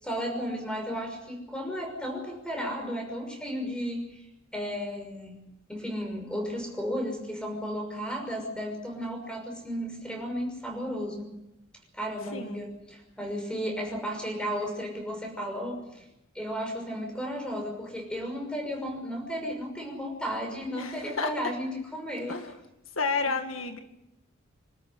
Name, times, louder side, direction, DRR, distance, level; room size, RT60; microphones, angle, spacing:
voice 1, 0.0-4.2 4.5-11.3 11.9-16.0 16.3-22.4, equal, 5° left, 3 dB, 6.1 m, -34 dB
voice 2, 12.3-12.7 20.8-21.5 22.3-22.6 23.0-23.8, left 4 dB, 85° left, 6 dB, 2.0 m, -31 dB
26.5 x 13.0 x 9.9 m, 0.90 s
head